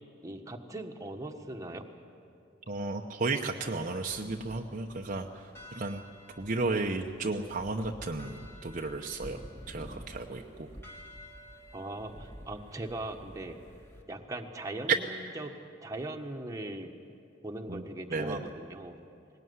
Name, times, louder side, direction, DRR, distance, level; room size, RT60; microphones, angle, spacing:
voice 1, 0.2-1.9 11.7-13.6 14.1-16.9 17.4-19.0, right 2 dB, 15° right, 3 dB, 1.4 m, -40 dB
voice 2, 2.7-6.0 6.4-9.4 9.7-10.7 17.7-17.8 18.1-18.4, right 3 dB, 40° right, 2 dB, 0.9 m, -34 dB
sound 1, 4.1-14.0, equal, 15° left, 2.0 m, -50 dB
20.0 x 18.5 x 9.6 m, 2.4 s
head